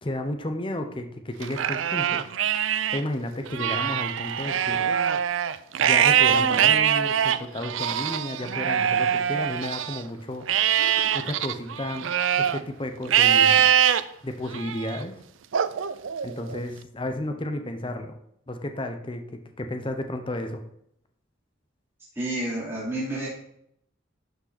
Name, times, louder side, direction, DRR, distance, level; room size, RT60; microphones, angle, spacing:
voice 1, 0.0-2.3 2.9-4.8 5.8-10.5 11.1-13.7 14.2-15.1 16.2-18.2 18.5-19.2 19.6-20.6, left 1 dB, 25° left, 6 dB, 0.8 m, -32 dB
Livestock farm animals working animals, 1.4-3.0 3.4-10.0 10.5-12.6 13.1-14.0 14.5-15.0 15.5-16.6, right 9 dB, 80° right, 0.5 m, -23 dB
voice 2, 22.1-23.3, right 1 dB, 15° right, -8 dB, 3.4 m, -29 dB
11.5 x 5.5 x 4.1 m, 0.73 s
head